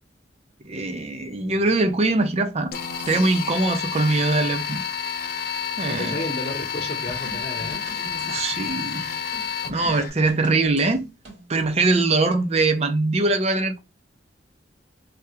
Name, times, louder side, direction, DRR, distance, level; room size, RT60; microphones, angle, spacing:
voice 1, 0.6-2.7 3.1-4.8 5.8-6.2 8.0-9.0 9.7-11.1 11.5-13.8, right 2 dB, 35° right, 0.6 m, -22 dB
sound 1, 2.7-10.1, left 7 dB, 55° left, 0.5 m, -30 dB
voice 2, 5.9-7.9, left 1 dB, 35° left, 0.9 m, -32 dB
sound 2, 7.1-12.1, equal, 85° right, 1.9 m, -43 dB
3.3 x 2.3 x 2.8 m
head